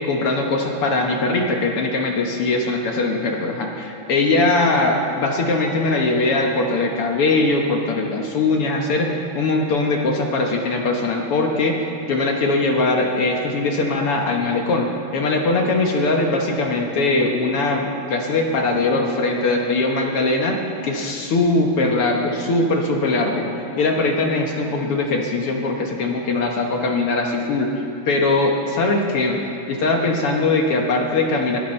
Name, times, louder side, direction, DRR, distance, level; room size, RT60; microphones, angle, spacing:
voice 1, 0.1-20.6 20.8-23.5 23.8-29.4 29.7-31.6, left 2 dB, 60° left, 1 dB, 1.8 m, -21 dB
20.0 x 14.0 x 4.4 m, 2.8 s
omnidirectional pair, 3.3 m